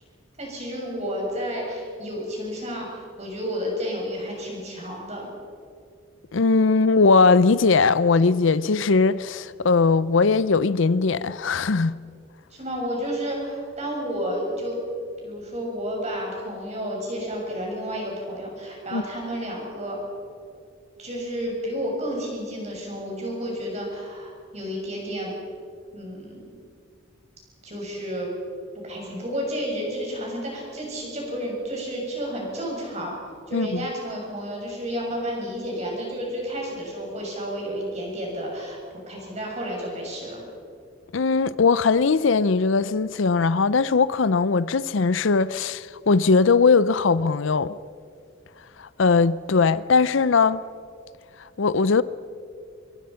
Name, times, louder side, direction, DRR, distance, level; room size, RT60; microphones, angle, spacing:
voice 1, 0.4-5.3 12.5-14.8 15.2-20.0 21.0-25.3 25.9-26.5 27.6-28.3 28.8-33.2 33.5-38.8 39.1-40.4, equal, 35° right, 7.0 m, -31 dB
voice 2, 6.3-11.9 18.9-19.0 33.5-33.9 41.1-47.7 48.8-50.6 51.6-52.0, left 4 dB, 70° left, 0.5 m, -20 dB
25.0 x 22.5 x 5.8 m
head